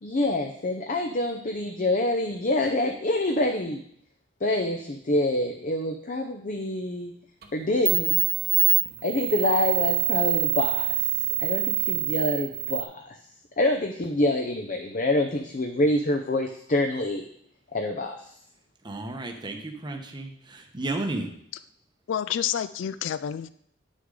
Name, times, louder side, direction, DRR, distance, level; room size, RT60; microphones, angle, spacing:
voice 1, 0.0-3.8 4.4-7.1 7.5-8.2 9.0-11.0 11.4-13.2 13.6-17.2 17.7-18.2, left 1 dB, 45° left, 4 dB, 0.6 m, -26 dB
sound 1, 7.4-7.5 7.9-12.8, right 12 dB, 55° right, 1.0 m, -25 dB
voice 2, 18.8-21.3, right 2 dB, 25° right, 3 dB, 0.8 m, -33 dB
voice 3, 22.1-23.5, left 9 dB, 80° left, 15 dB, 0.3 m, -29 dB
9.5 x 6.4 x 3.8 m, 0.66 s
head